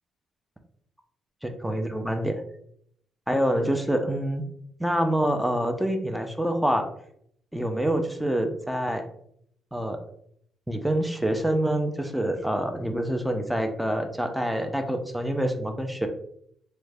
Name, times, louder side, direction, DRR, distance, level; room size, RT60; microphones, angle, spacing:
voice 1, 1.4-2.4 3.3-4.4 4.8-6.8 7.5-9.0 9.7-10.0 10.7-16.1, right 1 dB, 5° right, 5 dB, 0.4 m, -26 dB
3.4 x 2.1 x 3.3 m, 0.68 s
cardioid pair, 90°, 0 cm